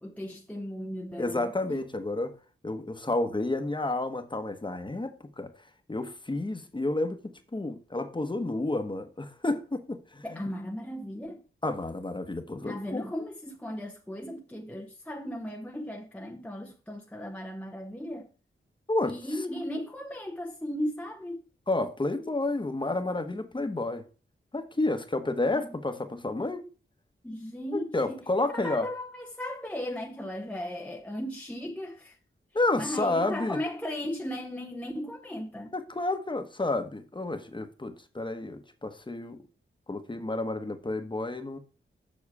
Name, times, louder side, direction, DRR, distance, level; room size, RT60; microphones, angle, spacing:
voice 1, 0.0-1.8 10.2-11.4 12.6-18.3 19.1-21.5 25.5-25.8 27.2-28.3 28.5-32.2 32.7-35.7, left 1 dB, 5° left, 0.8 m, -36 dB
voice 2, 1.2-2.3 2.6-5.5 5.9-10.2 11.6-13.0 18.9-19.2 21.7-24.0 24.5-26.6 27.7-28.9 32.5-33.6 35.7-39.4 39.9-41.6, left 2 dB, 20° left, 1.1 m, -30 dB
7.5 x 6.2 x 4.7 m
wide cardioid pair, 105°, 21 cm